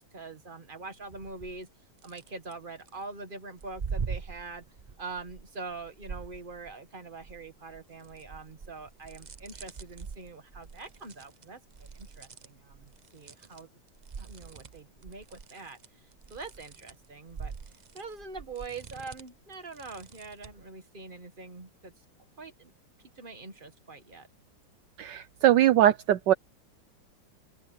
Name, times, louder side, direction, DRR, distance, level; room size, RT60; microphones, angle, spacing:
voice 1, 0.0-1.7 2.0-4.6 5.0-13.7 14.2-15.8 16.3-17.5 17.9-21.9 22.4-22.7 23.1-24.3, right 3 dB, 30° right, 1.6 m, -44 dB
sound 1, 1.0-1.6 2.0-2.9 3.6-6.9 7.2-13.6 13.9-20.6, right 5 dB, 50° right, 0.5 m, -43 dB
voice 2, 25.0-26.3, right 12 dB, 75° right, 1.3 m, -21 dB
open air
omnidirectional pair, 2.0 m